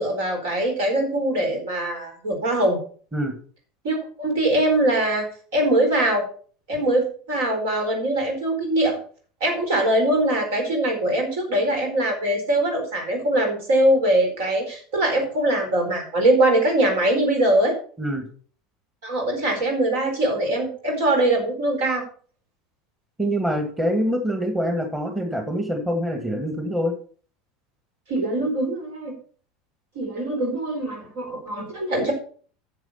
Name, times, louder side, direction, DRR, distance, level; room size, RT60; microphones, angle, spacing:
voice 1, 0.0-2.8 3.8-5.3 5.5-6.2 6.7-9.0 9.4-17.7 19.0-22.0 28.1-29.1 29.9-32.1, right 1 dB, 65° right, 2 dB, 4.5 m, -22 dB
voice 2, 23.2-27.0, equal, 10° right, 5 dB, 2.0 m, -25 dB
10.5 x 7.0 x 5.7 m, 0.44 s
figure-of-eight pair, 75°, 0 cm